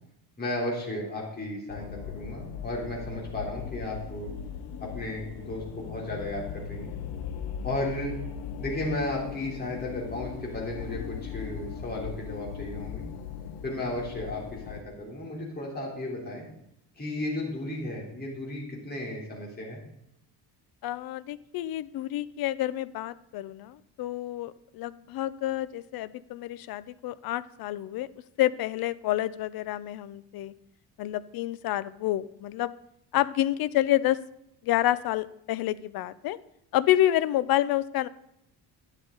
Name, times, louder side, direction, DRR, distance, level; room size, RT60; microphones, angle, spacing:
voice 1, 0.4-4.3 4.8-6.9 7.6-8.2 8.6-13.1 13.6-16.5 17.0-19.8, left 1 dB, 25° left, -2 dB, 3.4 m, -34 dB
sound 1, 1.7-14.8, left 8 dB, 85° left, 0.9 m, -38 dB
voice 2, 20.8-28.1 28.4-30.5 31.0-32.7 33.1-34.2 34.6-36.4 36.7-38.1, left 14 dB, 65° left, 18 dB, 0.6 m, -28 dB
11.5 x 10.5 x 3.9 m, 0.78 s
cardioid pair, 140°, 39 cm